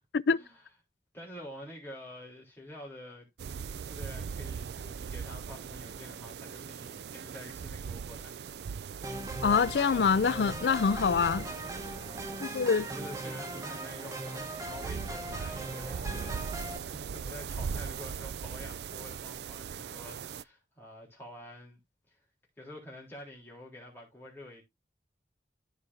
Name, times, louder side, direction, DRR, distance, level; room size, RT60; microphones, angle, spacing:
voice 1, 0.3-0.6 1.1-3.3 3.5-8.5 11.9-21.8 22.1-22.2 22.6-24.6, left 1 dB, 15° left, 3.6 m, -48 dB
sound 1, 3.4-20.4, right 6 dB, 75° right, 0.4 m, -40 dB
sound 2, 9.0-16.8, right 1 dB, 20° right, 1.2 m, -40 dB
voice 2, 9.4-11.5 12.4-12.8, left 5 dB, 75° left, 0.4 m, -25 dB
14.0 x 5.0 x 2.7 m
head